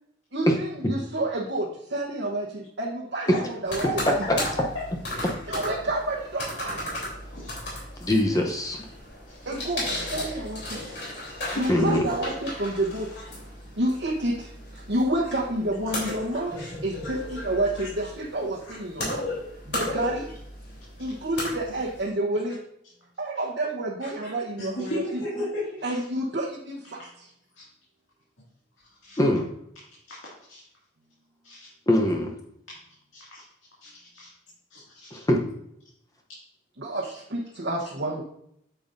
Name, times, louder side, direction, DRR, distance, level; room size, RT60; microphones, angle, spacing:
voice 1, 0.3-1.7 1.9-4.1 5.5-6.8 9.5-9.8 10.1-10.8 11.5-13.1 13.8-14.3 14.9-16.5 16.8-19.2 19.7-20.3 21.0-22.5 23.2-25.0 25.8-27.0 36.8-37.0 37.3-38.2, right 1 dB, 65° right, -4 dB, 1.0 m, -29 dB
sound 1, 3.7-22.0, left 1 dB, 55° left, 3.4 m, -35 dB
voice 2, 8.0-8.8 11.7-12.1 19.0-19.1 29.2-29.5 31.9-32.3 35.1-35.4, left 1 dB, 20° left, 1 dB, 0.7 m, -22 dB
voice 3, 9.3-9.6 9.9-10.2 11.2-12.0 15.9-16.1 16.6-16.7 17.0-17.1 17.7-17.9 18.7-18.8 24.6-26.0 27.5-27.6 29.0-29.2 30.1-30.2 30.5-30.6 31.4-31.7 33.1-33.4 33.8-34.3 34.7-35.2, left 1 dB, 85° left, -7 dB, 2.3 m, -36 dB
9.2 x 6.9 x 2.6 m, 0.73 s
head